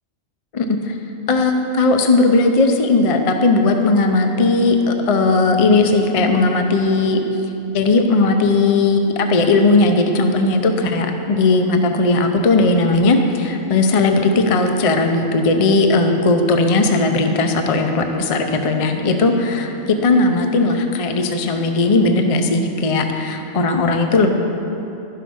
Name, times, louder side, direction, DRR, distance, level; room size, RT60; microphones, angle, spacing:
voice 1, 0.5-1.0 1.3-7.2 7.7-24.3, left 3 dB, 45° left, 5 dB, 0.4 m, -17 dB
11.0 x 5.8 x 6.2 m, 2.8 s
omnidirectional pair, 1.3 m